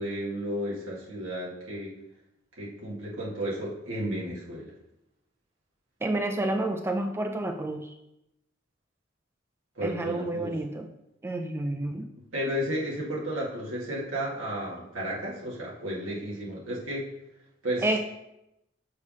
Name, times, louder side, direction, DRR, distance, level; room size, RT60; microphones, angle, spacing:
voice 1, 0.0-1.9 2.6-4.7 9.8-10.5 12.3-17.1 17.6-17.9, equal, 90° right, -6 dB, 2.2 m, -33 dB
voice 2, 6.0-7.9 9.8-10.9 11.2-12.1 17.8-18.0, right 1 dB, 10° right, 5 dB, 0.3 m, -29 dB
6.5 x 3.5 x 5.3 m, 0.87 s
head